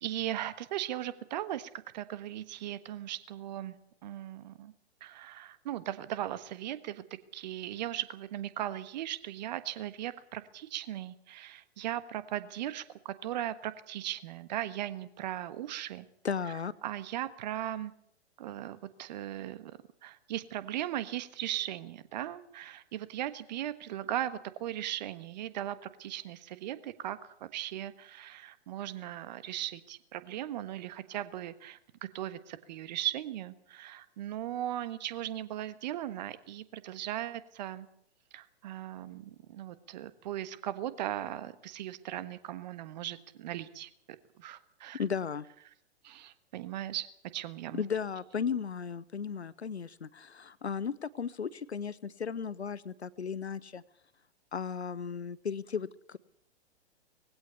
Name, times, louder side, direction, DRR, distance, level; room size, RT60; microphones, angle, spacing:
voice 1, 0.0-4.7 5.0-16.1 16.5-16.6 16.8-17.9 18.4-19.7 20.0-31.8 32.1-37.9 38.3-43.9 44.4-45.0 46.0-47.1 47.3-47.8, right 12 dB, 40° right, 14 dB, 1.4 m, -38 dB
voice 2, 16.2-16.7 45.0-45.4 47.7-53.8 54.5-56.2, left 6 dB, 75° left, 20 dB, 0.8 m, -35 dB
20.5 x 16.0 x 8.3 m, 0.71 s
figure-of-eight pair, 110°, 33 cm